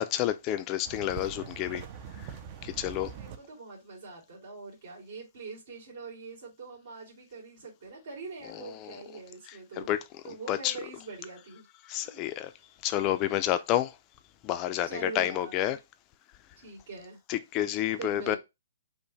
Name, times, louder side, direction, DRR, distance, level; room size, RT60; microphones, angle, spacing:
voice 1, 0.0-1.8 2.2-2.3 2.6-3.1 8.8-9.0 9.9-10.0 10.5-10.7 11.9-12.5 12.8-13.9 14.4-15.8 17.3-18.4, left 13 dB, 25° left, 0.4 m, -29 dB
sound 1, 0.8-3.4, right 8 dB, 35° right, 0.5 m, -42 dB
voice 2, 2.9-9.9 10.2-11.6 12.0-12.3 14.9-15.8 16.6-17.2 18.0-18.4, right 4 dB, 65° right, 2.3 m, -43 dB
5.5 x 2.2 x 3.9 m
hypercardioid pair, 155°, 0 cm